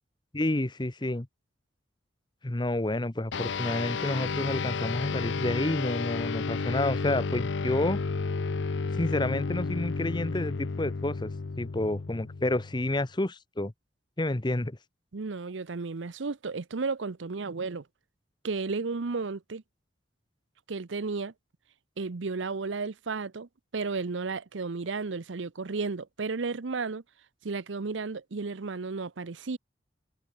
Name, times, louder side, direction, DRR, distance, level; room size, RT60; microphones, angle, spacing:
voice 1, 0.3-1.3 2.4-8.0 9.0-11.3 11.6-13.7 14.2-14.8, left 1 dB, 25° left, 0.9 m, -29 dB
sound 1, 3.3-13.1, left 4 dB, 75° left, 0.6 m, -32 dB
voice 2, 15.1-17.8 18.4-19.6 20.7-21.3 22.0-27.0 27.4-29.6, right 4 dB, 80° right, 0.7 m, -33 dB
head